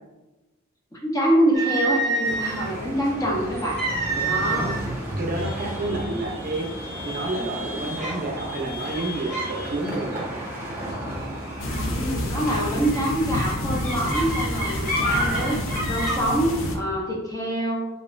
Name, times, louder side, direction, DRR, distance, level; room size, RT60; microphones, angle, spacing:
voice 1, 0.9-3.8 4.2-4.7 5.9-6.2 11.9-15.6 15.9-17.9, right 1 dB, 15° left, -3 dB, 0.8 m, -25 dB
sound 1, 1.5-2.7 3.7-4.9 5.2-5.5 6.2-6.3 6.7-7.2 8.0-8.2 8.8-9.5 9.8-10.2 11.6-11.9 12.4-16.2, right 2 dB, 35° left, 1.5 m, -28 dB
sound 2, 2.2-16.8, equal, 10° right, 1.1 m, -34 dB
voice 2, 4.1-4.7 5.2-10.5 15.1-15.6, right 2 dB, 45° right, 1 dB, 0.5 m, -30 dB
sound 3, 11.6-16.8, left 1 dB, 70° left, 0.6 m, -29 dB
4.0 x 3.6 x 2.5 m, 1.1 s
head